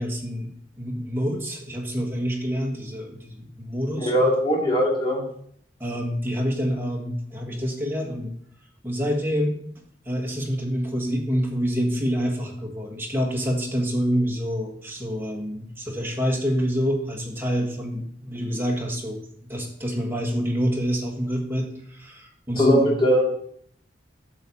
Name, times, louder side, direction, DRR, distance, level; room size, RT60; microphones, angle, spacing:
voice 1, 0.0-4.3 5.8-8.3 8.8-9.5 10.0-19.2 19.5-22.9, equal, 15° right, -1 dB, 1.7 m, -27 dB
voice 2, 4.0-5.2 22.6-23.2, equal, 30° left, -4 dB, 2.7 m, -20 dB
9.1 x 6.3 x 4.2 m, 0.65 s
head